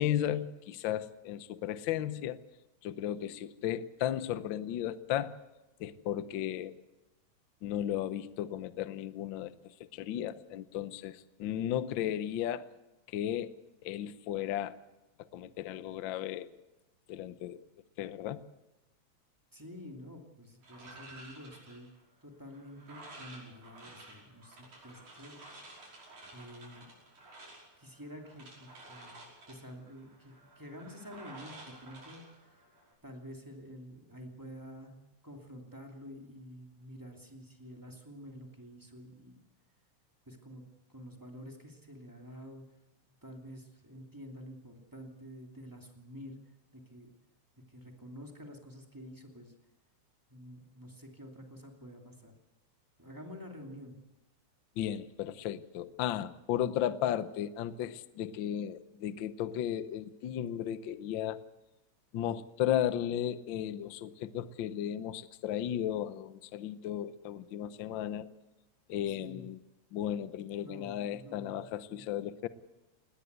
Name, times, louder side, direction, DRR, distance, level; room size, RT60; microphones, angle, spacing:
voice 1, 0.0-2.4 2.8-5.3 5.8-6.7 7.6-9.5 9.8-12.7 13.1-13.5 13.8-14.8 15.3-16.5 17.1-17.6 18.0-18.4 54.8-61.4 62.1-68.3 68.9-69.6 69.9-72.5, left 11 dB, 85° left, 14 dB, 1.0 m, -35 dB
voice 2, 19.5-21.9 22.2-26.0 26.3-26.9 27.8-32.6 33.0-34.9 35.2-39.4 40.3-40.6 40.9-42.6 43.2-46.4 46.7-47.1 47.7-49.5 50.3-52.3 53.0-53.9 69.1-69.4 70.6-71.6 71.9-72.0, equal, 5° right, 2 dB, 2.3 m, -49 dB
sound 1, 20.6-32.9, right 2 dB, 85° right, 7.1 m, -52 dB
19.0 x 19.0 x 8.1 m, 1.0 s
omnidirectional pair, 3.4 m